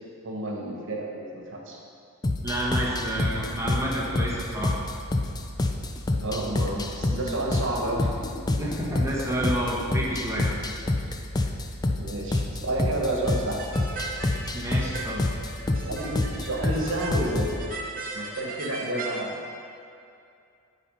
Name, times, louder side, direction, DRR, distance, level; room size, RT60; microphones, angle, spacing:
voice 1, 0.2-1.8 6.1-8.1 12.0-13.6 15.8-17.7 18.1-19.4, right 1 dB, 60° right, -1 dB, 1.4 m, -30 dB
sound 1, 2.2-17.6, left 2 dB, 20° left, 0.4 m, -28 dB
voice 2, 2.4-4.7 8.6-10.5 14.5-15.2, right 1 dB, 15° right, -5 dB, 1.3 m, -29 dB
sound 2, 13.2-19.2, right 3 dB, 40° right, 1.0 m, -38 dB
10.0 x 4.1 x 5.5 m, 2.5 s
head